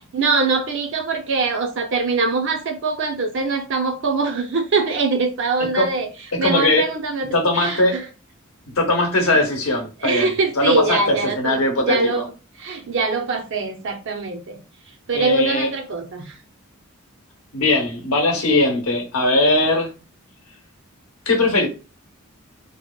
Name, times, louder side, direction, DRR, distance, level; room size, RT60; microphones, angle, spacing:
voice 1, 0.0-6.1 6.4-7.3 7.5-8.1 9.3-9.4 10.0-11.6 11.9-12.2 12.6-14.6 15.1-16.4, right 3 dB, 60° right, 0.5 m, -23 dB
voice 2, 6.4-6.9 7.2-8.0 8.8-10.3 10.6-12.2 15.1-15.7 17.5-19.9 21.3-21.7, left 2 dB, 70° left, 0.7 m, -19 dB
2.7 x 2.1 x 2.2 m
head